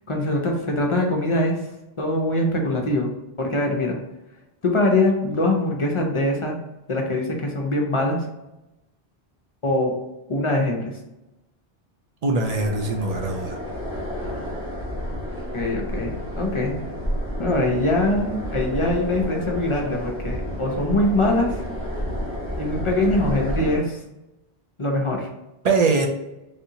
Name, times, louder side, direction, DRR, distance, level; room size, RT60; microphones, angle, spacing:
voice 1, 0.1-1.6 2.0-4.0 4.6-6.6 6.9-8.2 9.6-10.0 10.3-10.9 15.5-16.8 17.4-21.6 22.6-24.0 24.8-25.3, left 1 dB, 40° left, 1 dB, 0.5 m, -23 dB
voice 2, 12.2-13.6 25.6-26.1, right 3 dB, 55° right, 2 dB, 0.4 m, -22 dB
sound 1, 12.4-23.8, equal, 15° right, 0.8 m, -30 dB
3.4 x 2.8 x 2.7 m, 0.94 s
omnidirectional pair, 1.0 m